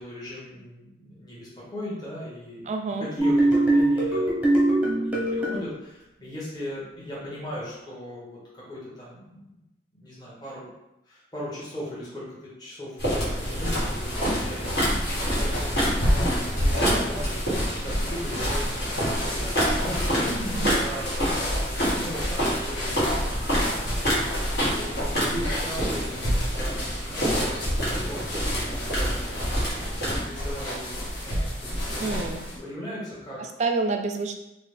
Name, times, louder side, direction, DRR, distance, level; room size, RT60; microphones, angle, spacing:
voice 1, 0.0-2.7 3.0-9.6 9.9-10.7 11.1-23.3 23.6-29.1 29.6-29.8 30.1-32.3 32.6-33.5, equal, 25° left, -8 dB, 1.0 m, -38 dB
voice 2, 2.7-3.1 20.5-20.8 32.0-32.5 33.6-34.3, right 3 dB, 40° right, 5 dB, 0.3 m, -28 dB
sound 1, 3.2-5.6, right 1 dB, 10° right, 0.7 m, -21 dB
sound 2, 13.0-30.2, equal, 60° left, 1.3 m, -28 dB
sound 3, 13.6-32.6, equal, 80° left, 0.8 m, -30 dB
3.8 x 2.1 x 3.3 m, 0.91 s
head